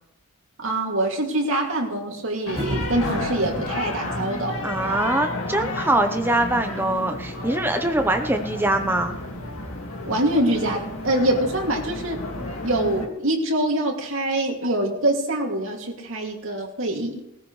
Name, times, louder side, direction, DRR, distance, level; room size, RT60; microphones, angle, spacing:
voice 1, 0.6-4.7 10.1-12.2 12.6-17.3, right 1 dB, 70° right, 1 dB, 2.4 m, -24 dB
sound 1, 2.5-13.1, left 2 dB, 75° left, 2.1 m, -32 dB
sound 2, 2.5-3.7, right 1 dB, 35° right, 4.0 m, -30 dB
voice 2, 4.6-9.2, right 1 dB, 10° right, 6 dB, 0.7 m, -23 dB
19.5 x 14.0 x 3.2 m, 0.83 s
head